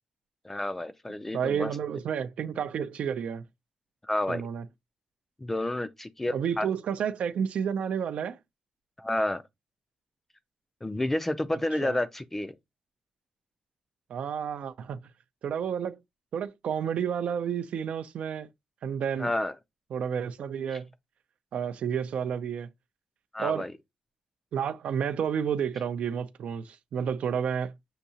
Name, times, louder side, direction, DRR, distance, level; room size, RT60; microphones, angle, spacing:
voice 1, 0.4-1.7 4.0-4.4 5.4-6.7 9.0-9.4 10.8-12.5 19.2-19.5 20.7-20.8 23.3-23.7, left 1 dB, 10° left, 0.3 m, -30 dB
voice 2, 1.3-3.4 4.3-4.7 6.3-8.4 11.8-12.0 14.1-15.0 15.4-16.0 16.3-18.5 18.8-19.3 19.9-20.9 21.5-22.7 23.4-23.7 24.5-27.7, right 7 dB, 65° right, 0.4 m, -30 dB
6.6 x 2.7 x 2.7 m
wide cardioid pair, 150°, 2 cm